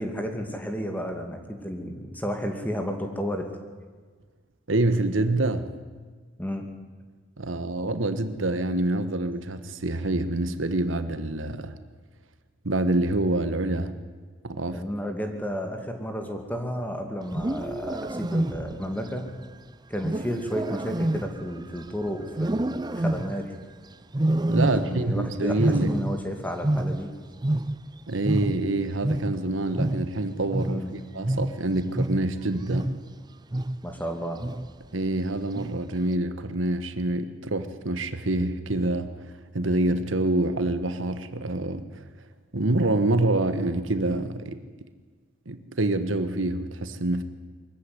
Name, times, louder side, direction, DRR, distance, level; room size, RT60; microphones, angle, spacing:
voice 1, 0.0-3.5 6.4-6.7 14.7-19.4 19.9-23.5 24.7-27.1 30.6-30.9 33.8-34.4, equal, 10° left, 4 dB, 2.5 m, -32 dB
voice 2, 4.7-5.7 7.4-11.7 12.6-13.9 14.4-14.8 24.5-25.9 28.1-30.8 31.1-32.9 34.9-39.1 39.5-41.8 42.5-44.6 45.5-47.2, right 2 dB, 85° right, 10 dB, 1.5 m, -26 dB
Wild animals, 17.2-18.9 20.0-21.9 22.3-23.5 24.1-25.2 25.5-28.0 28.2-33.1 33.5-34.0 34.4-34.8 35.5-36.0, right 1 dB, 20° right, 0.6 m, -28 dB
23.0 x 15.0 x 9.7 m, 1.4 s
head